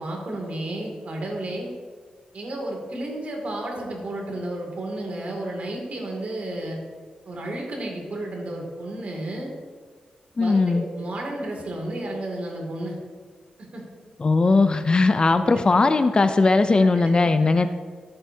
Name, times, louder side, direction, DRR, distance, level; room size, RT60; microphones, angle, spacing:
voice 1, 0.0-1.7 2.3-6.8 7.3-9.5 10.4-13.0 13.6-13.8 15.3-15.6 16.8-16.9 17.4-17.5, right 1 dB, 60° right, 0 dB, 2.4 m, -32 dB
voice 2, 10.4-10.8 14.2-17.7, left 3 dB, 35° left, 10 dB, 0.5 m, -19 dB
12.5 x 7.9 x 2.8 m, 1.5 s
cardioid pair, 90°, 3 cm